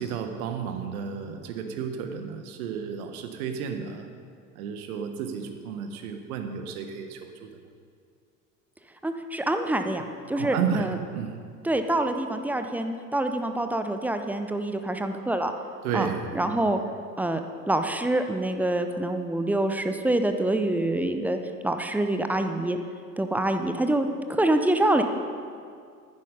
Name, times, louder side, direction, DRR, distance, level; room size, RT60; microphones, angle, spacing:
voice 1, 0.0-4.1 4.6-7.5 10.3-11.4 15.8-16.6, right 7 dB, 60° right, 6 dB, 1.3 m, -32 dB
voice 2, 9.0-11.0 11.6-15.5 15.9-16.1 16.3-16.8 17.2-17.4 17.7-21.4 21.6-22.8 23.2-25.0, right 1 dB, 5° right, 7 dB, 0.4 m, -26 dB
10.5 x 10.0 x 5.3 m, 2.2 s
figure-of-eight pair, 80°, 47 cm